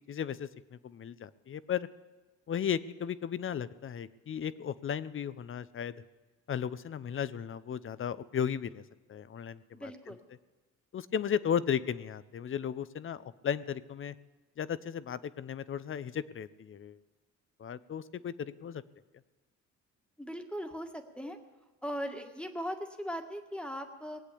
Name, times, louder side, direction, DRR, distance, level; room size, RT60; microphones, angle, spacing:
voice 1, 0.0-1.9 2.5-5.9 6.5-8.8 9.1-9.9 10.9-14.1 14.6-17.0 17.6-18.8, left 8 dB, 45° left, 16 dB, 0.7 m, -35 dB
voice 2, 9.7-10.2 20.2-21.4 21.8-24.2, equal, 5° left, 4 dB, 1.6 m, -39 dB
19.0 x 8.2 x 8.4 m, 1.2 s
cardioid pair, 90°, 30 cm